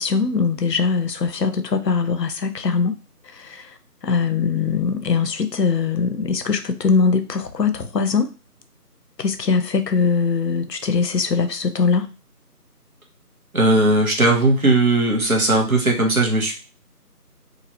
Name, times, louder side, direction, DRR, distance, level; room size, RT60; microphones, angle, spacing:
voice 1, 0.0-3.0 3.2-8.3 9.2-12.1, left 5 dB, 85° left, 0.7 m, -21 dB
voice 2, 13.5-16.5, right 2 dB, 60° right, 0.9 m, -18 dB
2.9 x 2.4 x 2.8 m
figure-of-eight pair, 175°, 48 cm